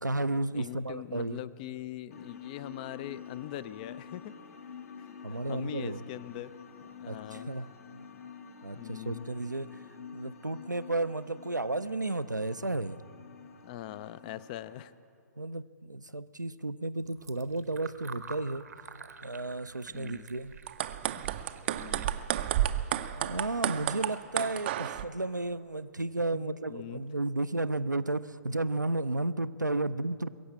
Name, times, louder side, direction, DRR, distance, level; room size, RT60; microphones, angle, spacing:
voice 1, 0.0-1.4 5.2-6.0 7.1-7.7 8.6-9.8 10.1-13.0 15.4-18.6 19.2-20.5 23.0-30.3, right 2 dB, 90° right, 13 dB, 0.5 m, -33 dB
voice 2, 0.5-4.4 5.0-6.5 7.0-7.6 8.8-9.2 13.6-14.9 19.9-20.3 21.1-21.2 21.7-22.2 26.3-27.0, left 13 dB, 30° left, 17 dB, 0.4 m, -42 dB
sound 1, 2.1-14.8, left 6 dB, 55° left, 1.0 m, -48 dB
Fill (with liquid), 17.0-23.2, right 5 dB, 65° right, 0.8 m, -50 dB
sound 2, 20.5-25.0, right 12 dB, 35° right, 0.4 m, -31 dB
21.0 x 7.8 x 8.4 m, 2.4 s
figure-of-eight pair, 120°, 10 cm